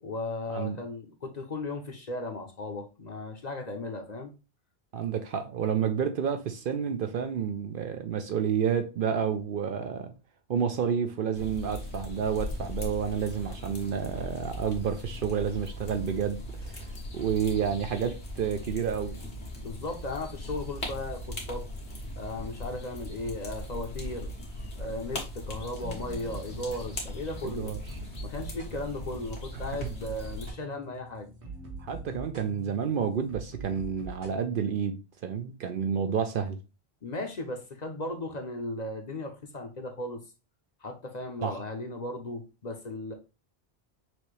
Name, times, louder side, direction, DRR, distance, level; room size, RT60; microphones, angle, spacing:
voice 1, 0.0-4.3 19.6-21.7 22.1-24.3 24.8-27.7 28.2-31.3 37.0-40.2 40.8-43.1, left 2 dB, 45° left, 0.8 m, -36 dB
voice 2, 4.9-10.1 10.5-19.2 27.4-27.8 29.8-29.9 31.8-36.6 41.4-41.6, right 7 dB, 60° right, 0.7 m, -30 dB
sound 1, 11.3-30.5, left 1 dB, 85° left, 1.6 m, -39 dB
sound 2, 25.8-34.4, right 3 dB, 90° right, 1.6 m, -44 dB
6.0 x 2.8 x 3.2 m
omnidirectional pair, 1.1 m